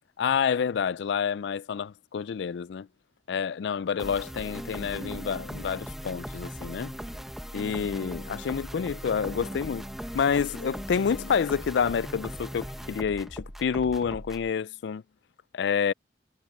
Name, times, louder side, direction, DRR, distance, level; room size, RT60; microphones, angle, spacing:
voice 1, 0.2-2.9 3.3-6.9 7.5-9.8 10.1-15.0 15.5-15.9, left 6 dB, 65° left, 0.3 m, -28 dB
sound 1, 4.0-14.5, equal, ahead, 1.1 m, -39 dB
sound 2, 4.9-6.0 6.6-7.3 7.6-7.7 8.2-8.3 8.5-10.4 10.8-10.9, right 1 dB, 60° right, 1.4 m, -47 dB
head